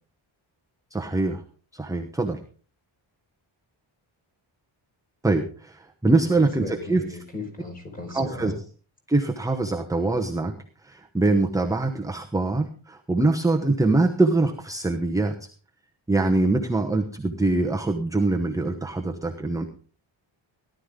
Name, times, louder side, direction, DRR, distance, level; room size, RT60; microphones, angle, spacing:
voice 1, 0.9-1.4 1.7-2.4 5.2-7.0 8.1-8.5 9.1-10.5 10.8-15.5 16.1-19.6, right 2 dB, 5° right, 3 dB, 1.0 m, -23 dB
voice 2, 6.2-8.5, left 2 dB, 15° left, 2 dB, 4.8 m, -37 dB
17.5 x 11.5 x 3.7 m, 0.40 s
wide cardioid pair, 165°, 48 cm